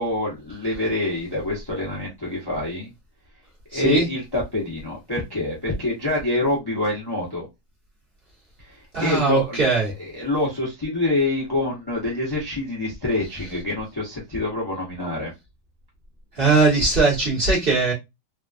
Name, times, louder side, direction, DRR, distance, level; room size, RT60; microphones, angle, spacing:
voice 1, 0.0-2.9 3.7-7.5 8.7-9.6 10.0-15.3, left 2 dB, 40° left, 0.3 m, -26 dB
voice 2, 3.7-4.1 8.9-9.9 16.4-17.9, right 3 dB, 35° right, 1.2 m, -20 dB
3.4 x 2.3 x 2.4 m
omnidirectional pair, 2.2 m